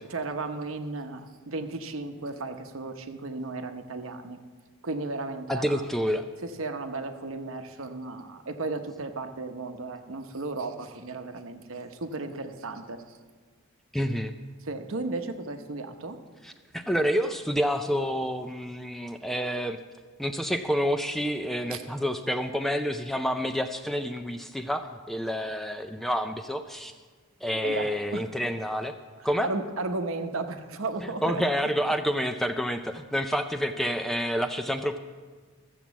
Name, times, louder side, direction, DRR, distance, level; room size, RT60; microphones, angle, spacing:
voice 1, 0.1-4.4 4.8-5.8 6.4-13.0 14.6-16.2 21.7-21.8 27.6-28.3 29.2-31.4, right 3 dB, 70° right, 7 dB, 0.9 m, -34 dB
voice 2, 5.5-6.2 13.9-14.3 16.4-19.8 20.2-26.9 27.4-28.9 29.2-29.5 31.0-35.0, equal, ahead, 7 dB, 0.4 m, -28 dB
14.0 x 7.3 x 7.0 m, 1.5 s
head